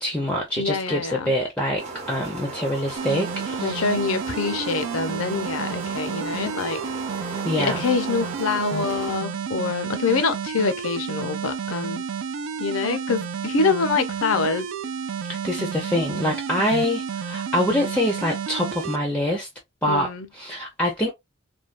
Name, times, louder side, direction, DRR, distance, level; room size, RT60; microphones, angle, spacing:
voice 1, 0.0-3.8 7.4-7.8 15.3-19.5 19.8-20.1 20.4-21.1, left 1 dB, 5° left, 0.5 m, -25 dB
voice 2, 0.6-1.3 3.6-6.8 7.3-12.0 12.6-14.7 19.8-20.3, left 4 dB, 70° left, 0.6 m, -25 dB
sound 1, 1.8-9.2, right 2 dB, 30° right, 0.7 m, -36 dB
sound 2, 3.0-19.0, right 6 dB, 65° right, 0.4 m, -31 dB
3.3 x 2.2 x 2.4 m
head